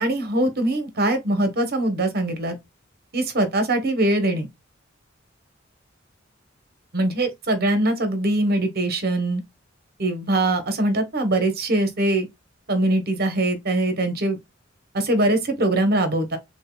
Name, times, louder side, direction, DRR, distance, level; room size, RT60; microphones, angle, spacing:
voice 1, 0.0-2.6 3.1-4.5 6.9-9.4 10.0-12.3 12.7-14.4 14.9-16.4, right 1 dB, 55° right, 1.1 m, -22 dB
6.3 x 2.2 x 2.2 m
head